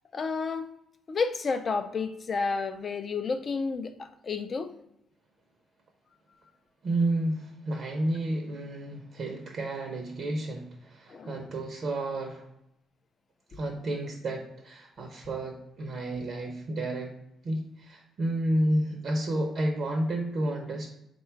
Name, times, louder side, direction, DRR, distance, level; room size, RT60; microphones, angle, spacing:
voice 1, 0.1-0.7 1.1-4.7 11.1-11.4, left 4 dB, 45° left, 9 dB, 0.4 m, -31 dB
voice 2, 6.8-12.5 13.5-17.1 17.4-20.9, right 1 dB, 60° right, 1 dB, 0.6 m, -31 dB
3.8 x 2.2 x 4.4 m, 0.82 s
cardioid pair, 90°, 0 cm